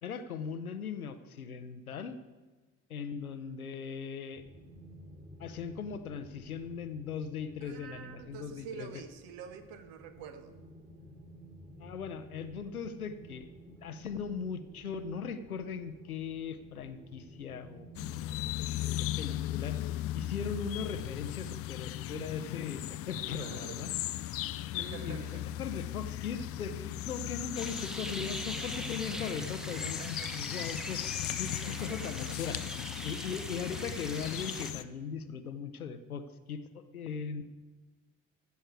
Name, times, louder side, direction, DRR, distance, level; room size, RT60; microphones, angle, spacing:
voice 1, 0.0-2.2 2.9-4.4 5.4-9.0 11.8-17.9 18.8-19.8 20.1-23.9 24.7-31.0 31.4-32.7 33.0-37.4, left 6 dB, 85° left, 10 dB, 0.7 m, -39 dB
sound 1, 4.4-18.7, right 1 dB, 20° right, 2.7 m, -53 dB
voice 2, 7.6-10.6 23.3-23.8 24.7-25.5 29.7-30.4 31.2-31.3 31.6-32.6, right 7 dB, 55° right, 10 dB, 1.1 m, -47 dB
sound 2, 17.9-34.8, left 14 dB, 35° left, 0.4 m, -37 dB
sound 3, 27.6-34.7, equal, ahead, 0.9 m, -42 dB
15.0 x 6.5 x 4.6 m, 1.3 s
figure-of-eight pair, 55°, 43 cm